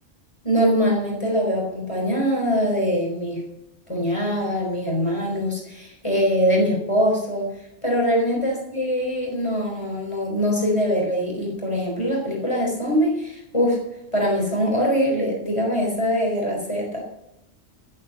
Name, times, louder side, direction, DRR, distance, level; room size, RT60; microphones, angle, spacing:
voice 1, 0.4-3.4 3.9-7.5 7.8-13.8 14.1-17.0, equal, 25° left, -2 dB, 4.2 m, -23 dB
13.5 x 7.8 x 7.8 m, 0.87 s
omnidirectional pair, 1.3 m